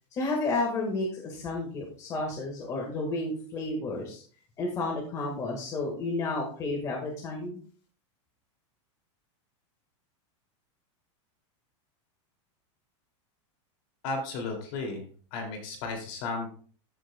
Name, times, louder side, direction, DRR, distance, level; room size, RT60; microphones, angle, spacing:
voice 1, 0.1-4.2 4.6-7.6, left 2 dB, 20° left, -1 dB, 1.6 m, -31 dB
voice 2, 14.0-15.0 15.3-16.5, left 3 dB, 45° left, 3 dB, 2.5 m, -34 dB
14.0 x 6.3 x 2.2 m, 0.44 s
supercardioid pair, 175°, 16 cm